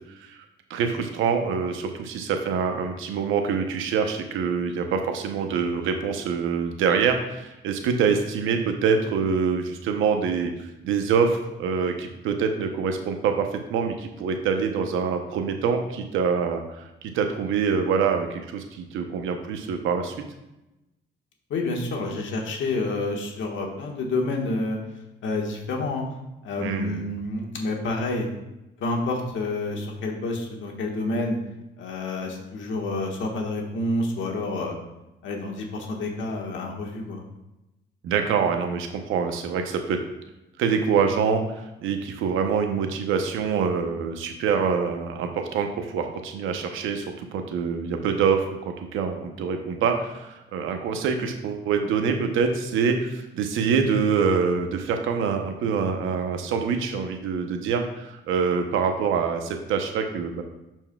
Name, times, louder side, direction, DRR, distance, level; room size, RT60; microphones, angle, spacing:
voice 1, 0.7-20.1 26.6-27.0 38.0-40.0 40.6-60.4, right 6 dB, 90° right, 5 dB, 0.8 m, -25 dB
voice 2, 21.5-24.8 25.2-26.0 26.4-28.3 28.8-31.4 31.8-34.8 35.2-37.2, left 2 dB, 75° left, 1 dB, 1.4 m, -28 dB
11.5 x 4.5 x 2.3 m, 0.94 s
cardioid pair, 90°, 20 cm